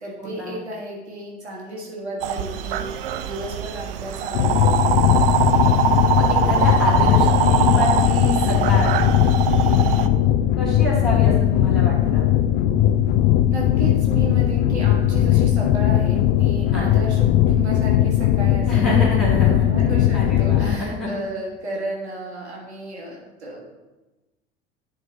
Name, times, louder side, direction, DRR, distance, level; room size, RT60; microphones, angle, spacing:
voice 1, 0.0-5.0 9.7-10.1 13.5-23.7, right 1 dB, 80° right, -3 dB, 1.5 m, -33 dB
sound 1, 2.2-10.1, right 10 dB, 60° right, 0.5 m, -23 dB
sound 2, 4.3-20.8, left 11 dB, 40° left, 0.4 m, -18 dB
voice 2, 6.1-9.0 10.6-12.2 16.7-16.8 18.7-19.7 20.1-21.1, left 1 dB, ahead, -9 dB, 2.5 m, -27 dB
11.0 x 3.8 x 4.1 m, 1.1 s
figure-of-eight pair, 70°, 33 cm